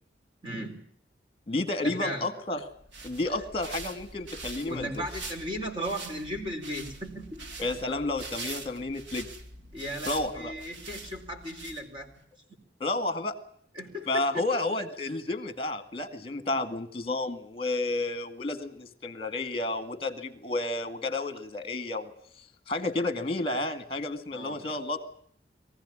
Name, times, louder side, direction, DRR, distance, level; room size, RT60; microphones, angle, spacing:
voice 1, 0.4-0.8 1.8-2.3 4.7-7.4 9.7-12.1 13.8-14.4 24.3-24.6, equal, 30° right, 0 dB, 4.1 m, -36 dB
voice 2, 1.5-2.7 3.0-5.0 7.6-9.3 10.0-10.5 12.8-13.4 14.1-22.1 22.7-25.0, left 2 dB, 30° left, 10 dB, 2.1 m, -31 dB
sound 1, 2.7-12.2, right 3 dB, 85° right, 2.4 m, -43 dB
22.5 x 15.5 x 9.9 m, 0.63 s
head